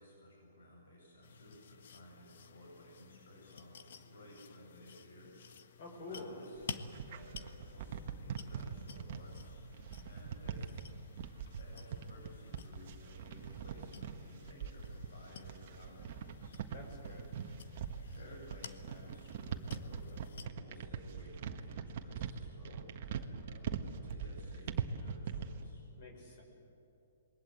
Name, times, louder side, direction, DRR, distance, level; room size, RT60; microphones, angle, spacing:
voice 1, 0.0-5.3 5.6-9.6 10.0-10.8 11.6-16.5 18.0-25.8, left 1 dB, 85° left, -1 dB, 7.8 m, -56 dB
sound 1, 1.2-20.5, left 6 dB, 65° left, 1.4 m, -53 dB
voice 2, 5.8-6.4 16.7-17.3 26.0-26.4, left 3 dB, 45° left, 2 dB, 5.9 m, -48 dB
sound 2, 6.5-25.7, right 7 dB, 45° right, 1.5 m, -42 dB
27.5 x 22.0 x 8.2 m, 2.9 s
hypercardioid pair, 160°, 0 cm